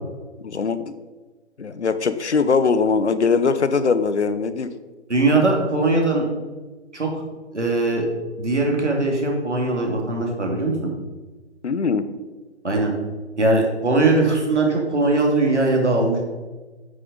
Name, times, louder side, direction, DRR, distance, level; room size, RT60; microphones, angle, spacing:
voice 1, 0.4-0.9 1.6-4.7 11.6-12.1, left 5 dB, 75° left, 12 dB, 0.9 m, -21 dB
voice 2, 5.1-6.2 6.9-7.2 7.5-8.1 8.4-10.7 12.6-12.9 13.4-16.3, right 2 dB, 85° right, 0 dB, 3.0 m, -20 dB
9.3 x 6.7 x 5.4 m, 1.3 s
figure-of-eight pair, 145°, 34 cm